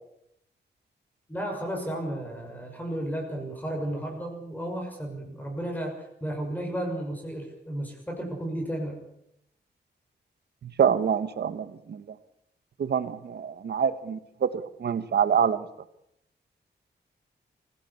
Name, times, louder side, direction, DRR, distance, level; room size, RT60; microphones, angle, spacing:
voice 1, 1.3-9.0, right 1 dB, 10° left, 1 dB, 6.2 m, -33 dB
voice 2, 10.6-12.0 12.8-15.7, right 7 dB, 65° right, 13 dB, 1.4 m, -26 dB
25.0 x 17.0 x 8.5 m, 0.78 s
wide cardioid pair, 165°, 18 cm